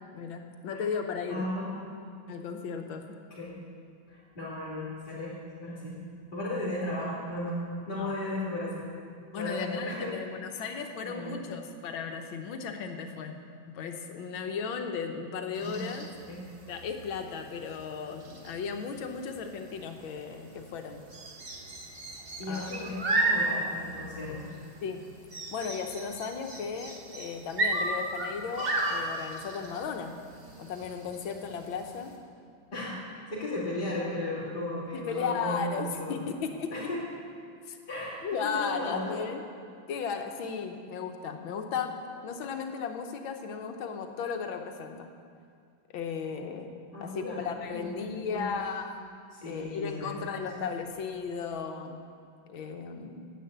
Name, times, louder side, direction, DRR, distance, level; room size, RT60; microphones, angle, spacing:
voice 1, 0.1-1.5 2.3-3.2 8.0-8.1 9.3-13.4 13.7-16.1 16.7-21.0 22.5-22.7 24.8-25.0 25.5-30.1 30.6-32.1 34.9-36.9 37.7-37.8 38.2-39.4 39.9-41.9 42.2-45.1 45.9-46.7 47.0-49.0 49.5-52.0 52.5-53.2, left 6 dB, 85° left, 5 dB, 1.7 m, -35 dB
voice 2, 1.3-1.7 3.3-3.6 4.1-6.0 6.3-8.8 9.3-10.1 10.5-10.7 11.0-11.6 15.6-15.9 16.3-16.4 22.4-24.5 32.7-33.0 33.3-36.2 36.7-37.0 37.9-38.2 38.5-39.2 46.9-48.5 49.3-50.3 50.5-50.6, left 1 dB, 25° left, -9 dB, 2.5 m, -35 dB
sound 1, 15.5-32.2, right 2 dB, 35° right, 1.3 m, -35 dB
10.0 x 8.0 x 8.0 m, 2.3 s
omnidirectional pair, 2.1 m